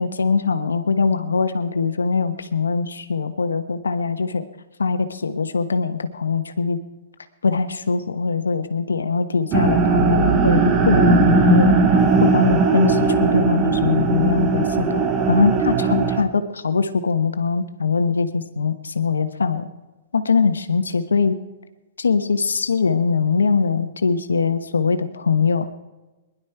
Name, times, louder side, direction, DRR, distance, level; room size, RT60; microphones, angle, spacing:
voice 1, 0.0-4.5 4.8-6.8 7.4-11.8 12.2-15.0 15.3-19.7 20.1-21.4 22.0-25.7, left 5 dB, 85° left, 10 dB, 1.1 m, -21 dB
sound 1, 9.5-16.2, right 4 dB, 25° right, 1.5 m, -18 dB
20.0 x 11.5 x 4.6 m, 1.1 s
hypercardioid pair, 120°, 0 cm